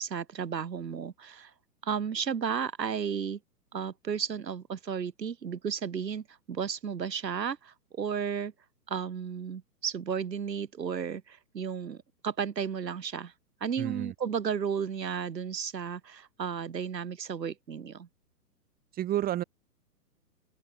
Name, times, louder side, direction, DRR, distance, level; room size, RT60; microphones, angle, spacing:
voice 1, 0.0-1.5 1.8-3.4 3.7-8.5 8.9-12.0 12.2-13.3 13.6-18.1, right 7 dB, 85° right, 4.2 m, -33 dB
voice 2, 13.8-14.1 18.9-19.4, right 12 dB, 20° right, 5.0 m, -30 dB
open air
hypercardioid pair, 150°, 49 cm